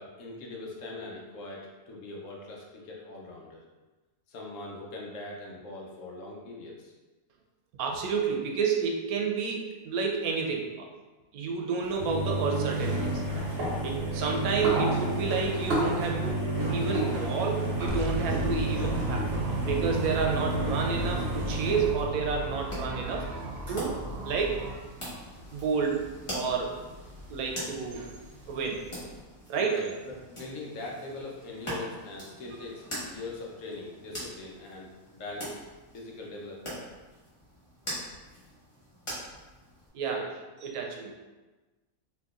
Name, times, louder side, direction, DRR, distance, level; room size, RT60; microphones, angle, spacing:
voice 1, 0.0-3.6 4.3-6.9 29.5-35.5 35.9-36.8 40.0-40.3, left 2 dB, 65° left, -2 dB, 1.0 m, -41 dB
voice 2, 7.8-10.9 11.3-13.2 13.8-19.3 19.6-24.0 24.2-24.8 25.1-25.2 25.5-26.8 27.3-28.2 28.5-28.8 29.5-29.8 39.9-40.2 40.6-41.1, right 5 dB, 85° right, 1 dB, 1.1 m, -30 dB
sound 1, 11.9-24.0 24.2-29.2, right 1 dB, 50° right, 1.0 m, -31 dB
sound 2, 17.9-24.7, right 1 dB, 65° right, 0.6 m, -35 dB
sound 3, 22.5-39.9, equal, 25° left, 1.1 m, -43 dB
3.9 x 2.8 x 2.3 m, 1.2 s
omnidirectional pair, 1.5 m